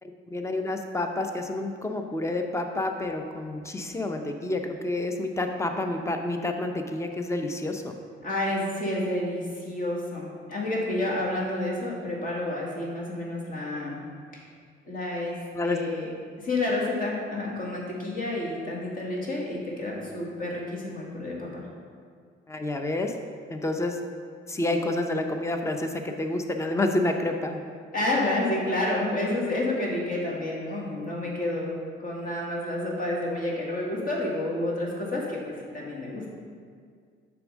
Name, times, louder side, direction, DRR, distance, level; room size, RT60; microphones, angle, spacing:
voice 1, 0.0-7.9 15.5-15.8 22.5-23.1 23.5-24.0 24.5-27.6, left 2 dB, 15° left, 5 dB, 0.6 m, -29 dB
voice 2, 8.2-14.0 14.3-14.5 14.9-16.1 16.4-21.7 27.9-31.7 32.0-36.3, left 1 dB, 45° left, -3 dB, 1.8 m, -30 dB
6.8 x 3.6 x 6.2 m, 2.1 s
cardioid pair, 90°, 20 cm